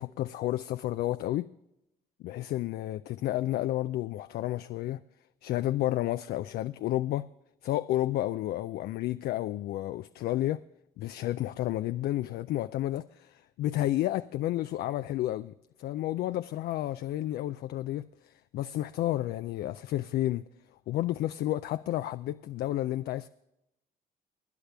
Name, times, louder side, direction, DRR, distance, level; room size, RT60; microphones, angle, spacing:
voice 1, 0.0-1.5 2.2-5.0 5.4-7.3 7.6-10.6 11.0-20.4 20.9-23.3, left 14 dB, 70° left, 0.4 m, -31 dB
20.5 x 9.9 x 3.4 m
supercardioid pair, 75°, 17 cm